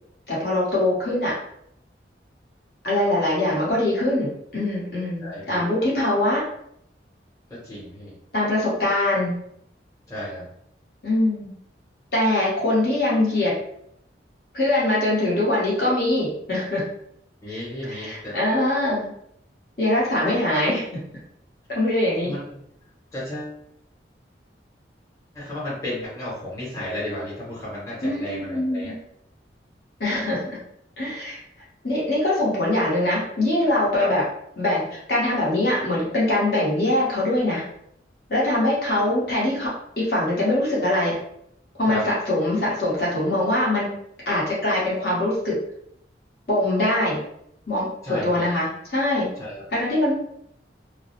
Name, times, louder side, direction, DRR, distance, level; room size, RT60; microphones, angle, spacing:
voice 1, 0.3-1.3 2.8-6.4 8.3-9.3 11.0-11.5 12.1-13.5 14.5-16.8 17.5-19.1 19.8-20.8 21.7-22.3 28.0-28.9 30.0-30.4 31.0-31.4 31.8-34.2 34.6-37.6 38.3-39.7 40.0-41.2 41.8-43.9 44.3-45.5 46.5-47.2 47.7-49.3 49.7-50.1, left 1 dB, 55° left, -7 dB, 0.9 m, -23 dB
voice 2, 5.2-5.6 7.5-8.1 10.1-10.4 17.4-18.4 22.2-22.4 23.1-23.5 25.3-28.9 34.0-34.1 41.9-42.0 48.0-48.4 49.4-49.6, left 1 dB, 20° left, -9 dB, 0.9 m, -33 dB
2.2 x 2.0 x 2.8 m, 0.73 s
head